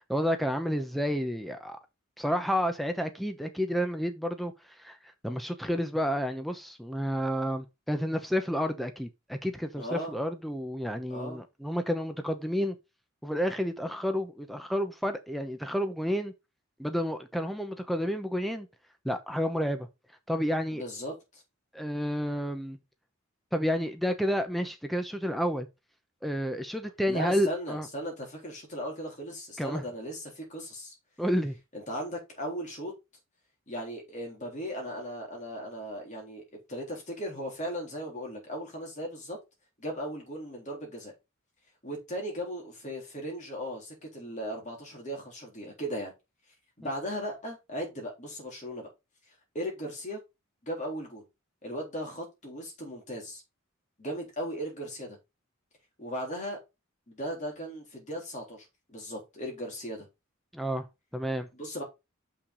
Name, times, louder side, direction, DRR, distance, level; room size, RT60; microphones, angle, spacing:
voice 1, 0.0-1.8 2.2-4.5 4.8-5.0 5.2-12.8 13.2-16.3 16.8-18.7 19.0-19.9 20.3-20.8 21.7-22.8 23.5-25.7 26.2-27.9 29.6-29.8 31.2-31.6 60.5-60.9 61.1-61.5, equal, ahead, 0.8 m, -30 dB
voice 2, 9.8-10.2 11.1-11.4 20.7-21.4 27.1-30.9 31.7-32.9 33.7-39.4 39.8-41.1 41.8-46.1 46.8-48.9 49.5-50.2 50.6-51.3 51.6-53.4 54.0-55.2 56.0-56.6 57.1-60.1 61.5-61.8, equal, 35° left, 3.8 m, -37 dB
6.7 x 5.9 x 4.0 m
head